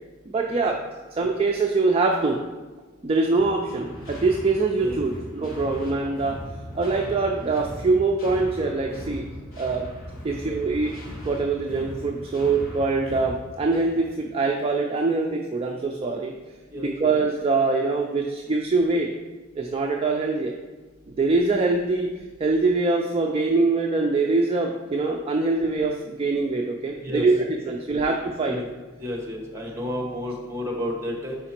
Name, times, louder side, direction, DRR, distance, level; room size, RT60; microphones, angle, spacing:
voice 1, 0.3-0.8 1.1-2.4 3.0-6.4 6.7-9.2 9.6-9.8 10.2-10.9 11.2-16.3 16.8-19.1 19.6-20.5 21.1-22.1 22.4-27.3 27.6-28.6, right 3 dB, 30° right, 1 dB, 0.4 m, -23 dB
sound 1, 3.4-14.1, equal, 45° left, 1.8 m, -39 dB
voice 2, 29.0-31.4, left 1 dB, 15° right, -1 dB, 1.1 m, -31 dB
5.0 x 4.8 x 4.4 m, 1.3 s
head